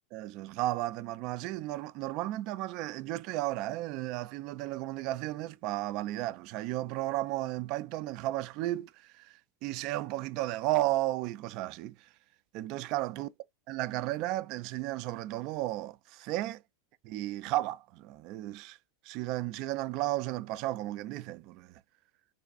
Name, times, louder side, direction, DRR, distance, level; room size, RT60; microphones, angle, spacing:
voice 1, 0.1-8.9 9.2-9.3 9.6-12.0 12.5-13.3 13.7-16.6 17.0-18.8 19.0-21.8, right 16 dB, 55° right, 0.4 m, -34 dB
3.4 x 2.3 x 4.0 m
supercardioid pair, 120°, 0 cm